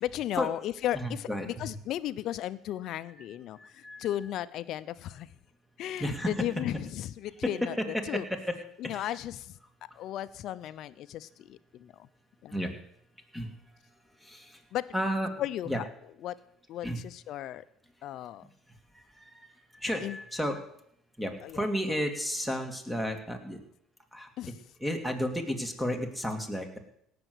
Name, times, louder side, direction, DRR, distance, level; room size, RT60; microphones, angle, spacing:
voice 1, 0.0-5.3 5.8-7.8 8.1-8.2 8.8-9.6 9.9-12.1 12.4-12.7 14.7-14.9 15.4-15.8 16.2-16.3 16.7-17.6 18.0-18.5 20.0-20.2 21.4-22.0 24.4-24.6, left 13 dB, 65° left, 14 dB, 0.7 m, -35 dB
voice 2, 0.9-1.7 3.6-4.1 6.0-6.3 7.4-7.8 8.5-8.6 8.8-9.1 12.5-12.7 13.3-13.5 14.2-14.6 14.9-15.8 16.8-17.0 18.9-20.6 21.2-23.6 24.1-24.5 24.8-26.8, equal, 5° right, 5 dB, 2.7 m, -33 dB
17.5 x 7.0 x 8.1 m, 0.73 s
supercardioid pair, 90°, 0 cm